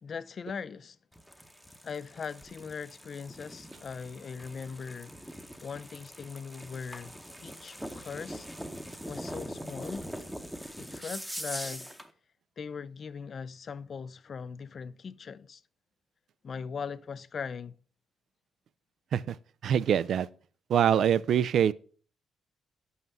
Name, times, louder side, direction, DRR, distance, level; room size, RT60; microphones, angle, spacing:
voice 1, 0.0-1.0 1.8-5.1 5.6-7.2 7.4-8.5 9.1-10.1 10.8-11.9 12.6-15.6 16.4-17.7, left 6 dB, 45° left, 0.4 m, -40 dB
sound 1, 1.1-12.1, equal, ahead, 0.8 m, -42 dB
voice 2, 19.6-20.3 20.7-21.7, right 9 dB, 65° right, 0.3 m, -24 dB
5.5 x 5.5 x 6.0 m
cardioid pair, 90°, 0 cm